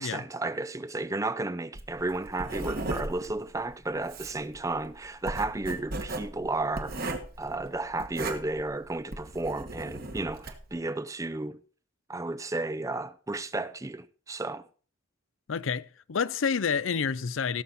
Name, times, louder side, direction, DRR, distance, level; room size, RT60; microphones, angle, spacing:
voice 1, 0.0-7.1 7.4-11.6 12.1-14.7, right 2 dB, 15° right, 0.5 m, -33 dB
Writing, 1.7-10.7, right 2 dB, 45° right, 1.4 m, -37 dB
voice 2, 15.5-17.6, left 6 dB, 75° left, 0.5 m, -29 dB
17.0 x 7.4 x 4.1 m
head